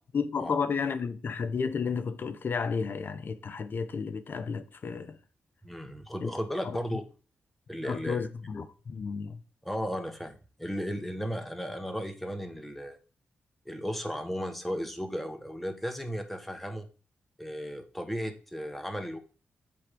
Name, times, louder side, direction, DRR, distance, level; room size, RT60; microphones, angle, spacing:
voice 1, 0.1-5.2 6.2-6.3 6.6-7.0 7.8-9.4, left 5 dB, 55° left, 0.7 m, -32 dB
voice 2, 5.6-7.1 7.7-8.3 9.6-10.3 10.6-13.0 13.6-16.9 17.4-19.2, equal, 5° left, 1.3 m, -35 dB
7.9 x 3.5 x 5.2 m
cardioid pair, 80°, 4 cm